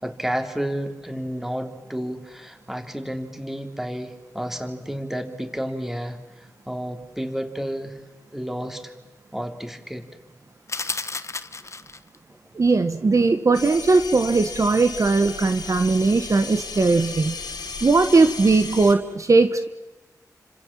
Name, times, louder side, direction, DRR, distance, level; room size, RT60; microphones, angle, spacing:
voice 1, 0.0-6.2 6.7-8.0 8.3-8.9 9.3-10.1, equal, 5° right, 6 dB, 3.5 m, -31 dB
sound 1, 10.7-12.2, left 3 dB, 45° left, 1.3 m, -32 dB
voice 2, 12.5-17.4 17.8-19.7, right 3 dB, 55° right, 9 dB, 1.5 m, -19 dB
sound 2, 13.5-18.9, left 4 dB, 85° left, 3.6 m, -35 dB
30.0 x 26.0 x 7.5 m, 1.1 s
wide cardioid pair, 65°, 7 cm